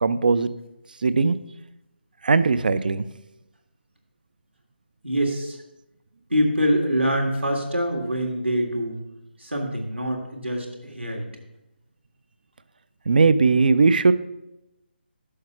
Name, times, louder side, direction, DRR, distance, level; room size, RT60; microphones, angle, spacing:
voice 1, 0.0-0.5 1.0-1.4 2.2-3.0 13.1-14.1, right 4 dB, 50° right, 15 dB, 0.4 m, -18 dB
voice 2, 5.0-5.6 6.3-9.0 9.4-11.3, equal, 85° right, 1 dB, 1.7 m, -25 dB
6.5 x 5.6 x 5.5 m, 0.91 s
figure-of-eight pair, 150°, 6 cm